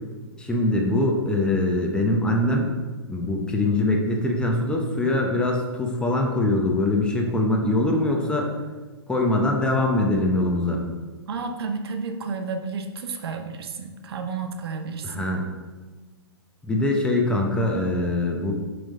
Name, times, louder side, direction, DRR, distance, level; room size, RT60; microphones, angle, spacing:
voice 1, 0.4-2.7 3.1-8.5 9.1-10.8 15.0-15.5 16.6-18.5, left 2 dB, 5° left, 0 dB, 0.7 m, -23 dB
voice 2, 11.3-15.3, right 4 dB, 65° right, 6 dB, 0.8 m, -31 dB
7.5 x 3.4 x 4.1 m, 1.3 s
hypercardioid pair, 130°, 14 cm